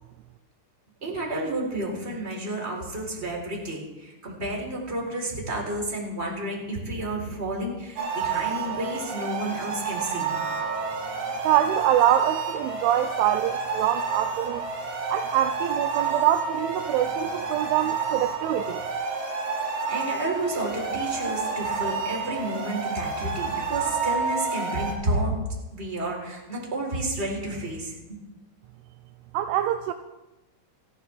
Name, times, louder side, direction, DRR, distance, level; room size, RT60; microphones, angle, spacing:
voice 1, 1.0-10.4 19.9-25.3 25.7-28.2, right 1 dB, 15° right, -1 dB, 3.5 m, -31 dB
sound 1, 8.0-24.9, right 5 dB, 45° right, 4.1 m, -30 dB
voice 2, 11.4-14.7 15.1-18.8 29.3-29.9, right 12 dB, 80° right, 9 dB, 2.9 m, -24 dB
29.5 x 11.5 x 3.5 m, 1.0 s
omnidirectional pair, 5.8 m